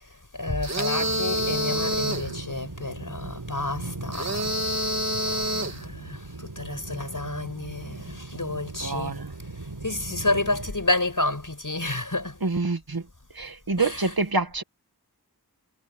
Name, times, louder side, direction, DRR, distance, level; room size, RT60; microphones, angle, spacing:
voice 1, 0.3-4.9 5.2-9.2 9.8-12.4 13.8-14.1, left 2 dB, 55° left, 6.2 m, -30 dB
sound 1, 0.6-2.3 4.1-5.8, equal, 40° right, 2.0 m, -27 dB
sound 2, 0.9-10.7, right 2 dB, 80° right, 3.8 m, -39 dB
voice 2, 8.8-9.3 12.4-13.0 13.3-14.6, right 3 dB, 65° right, 1.7 m, -26 dB
wide cardioid pair, 40°, 39 cm